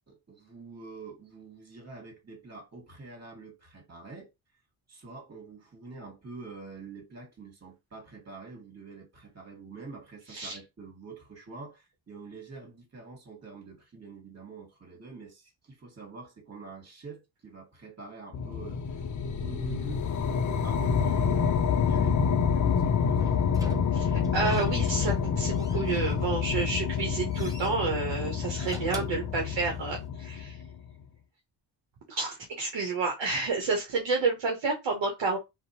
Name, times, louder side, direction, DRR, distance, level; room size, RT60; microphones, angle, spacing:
voice 1, 0.1-4.3 4.9-19.0 19.3-20.0 20.6-22.2 22.5-23.4, right 3 dB, 30° right, 1.5 m, -46 dB
sound 1, 18.3-30.8, left 6 dB, 40° left, 0.5 m, -28 dB
Slam / Squeak, 23.2-25.2 25.5-26.5 26.9-27.8 28.4-30.0, right 1 dB, 5° right, 0.8 m, -44 dB
voice 2, 23.9-30.6 32.1-35.4, right 4 dB, 65° right, 0.9 m, -30 dB
2.5 x 2.2 x 2.8 m
supercardioid pair, 40°, 49 cm